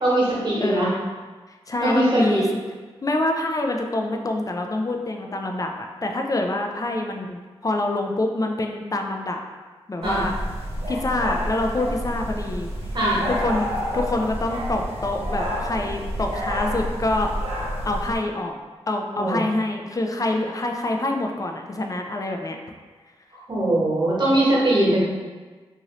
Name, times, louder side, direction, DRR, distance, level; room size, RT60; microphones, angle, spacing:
voice 1, 0.0-0.9 1.8-2.4 10.0-10.3 12.9-13.2 19.1-19.5 23.5-25.1, right 1 dB, 45° right, -6 dB, 1.2 m, -21 dB
voice 2, 0.6-0.9 1.7-2.4 3.0-9.4 9.9-10.3 10.9-12.7 13.3-17.3 17.8-18.6 18.9-22.6, left 2 dB, 30° left, 3 dB, 0.4 m, -26 dB
sound 1, 10.0-18.2, equal, 70° right, 0.9 m, -29 dB
2.7 x 2.6 x 3.1 m, 1.4 s
cardioid pair, 40°, 11 cm